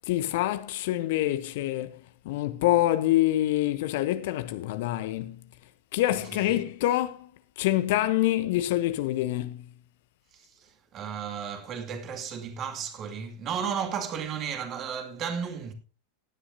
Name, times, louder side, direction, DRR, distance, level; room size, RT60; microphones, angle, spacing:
voice 1, 0.1-1.9 2.2-5.4 5.9-7.3 7.6-9.6, left 15 dB, 50° left, 0.8 m, -26 dB
voice 2, 6.1-6.6 10.3-15.7, right 7 dB, 30° right, 2.2 m, -34 dB
17.5 x 10.0 x 2.7 m
figure-of-eight pair, 90°, 0 cm